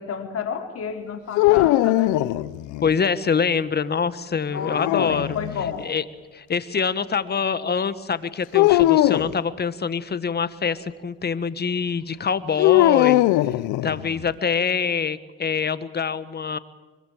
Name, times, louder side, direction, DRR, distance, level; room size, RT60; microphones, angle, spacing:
voice 1, 0.0-2.2 4.5-5.9, left 7 dB, 50° left, 4 dB, 4.7 m, -31 dB
sound 1, 1.4-2.9 4.6-5.7 8.5-9.3 12.6-14.2, left 16 dB, 80° left, 0.8 m, -19 dB
voice 2, 2.8-5.4 5.8-6.0 6.3-13.2 13.8-16.6, left 6 dB, 35° left, 14 dB, 1.5 m, -25 dB
25.0 x 22.5 x 7.7 m, 1.3 s
supercardioid pair, 80°, 30 cm